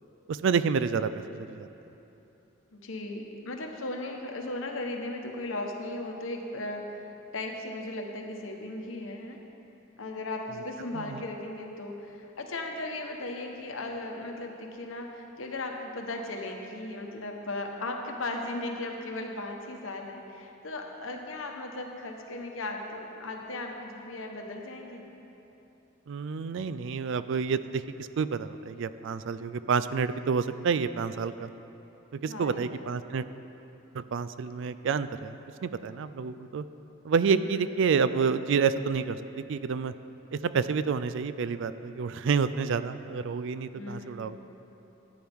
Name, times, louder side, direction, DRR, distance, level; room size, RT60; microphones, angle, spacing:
voice 1, 0.3-1.7 10.9-11.2 26.1-31.5 32.1-33.3 33.9-36.6 37.0-39.9 40.3-44.4, right 5 dB, 65° right, 13 dB, 0.4 m, -29 dB
voice 2, 2.7-7.0 7.3-9.4 10.0-25.1 32.3-32.9 37.4-37.6 43.7-44.5, left 2 dB, 80° left, 2 dB, 1.1 m, -37 dB
14.0 x 9.3 x 3.5 m, 3.0 s
head